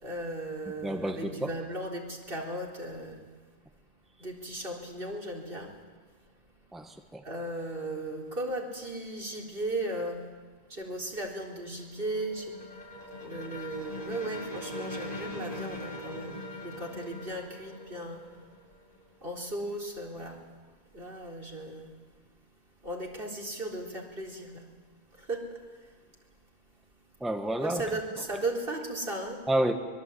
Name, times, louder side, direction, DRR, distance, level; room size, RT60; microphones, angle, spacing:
voice 1, 0.0-3.2 4.2-5.8 7.2-10.2 10.7-12.5 13.2-18.2 19.2-20.4 20.9-21.9 22.8-24.7 25.2-25.6 27.6-29.4, right 1 dB, 65° right, 0 dB, 4.2 m, -36 dB
voice 2, 0.8-1.5 6.7-7.2 27.2-27.8 29.5-29.7, right 1 dB, ahead, 5 dB, 1.5 m, -29 dB
sound 1, 11.6-19.2, left 1 dB, 55° left, 3.6 m, -41 dB
24.5 x 22.0 x 8.6 m, 1.5 s
omnidirectional pair, 1.1 m